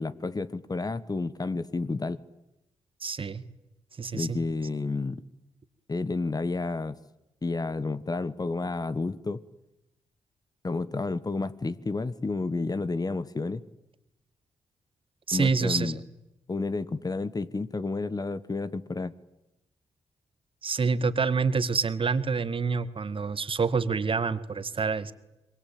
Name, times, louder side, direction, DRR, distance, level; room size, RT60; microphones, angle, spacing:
voice 1, 0.0-2.2 4.1-5.2 5.9-7.0 7.4-9.4 10.6-13.6 15.3-16.0 16.5-19.1, left 3 dB, 35° left, 15 dB, 1.5 m, -30 dB
voice 2, 3.0-3.4 4.0-4.4 15.3-16.0 20.6-25.1, right 5 dB, 50° right, 13 dB, 1.8 m, -27 dB
26.5 x 22.5 x 8.8 m, 0.93 s
supercardioid pair, 50°, 12 cm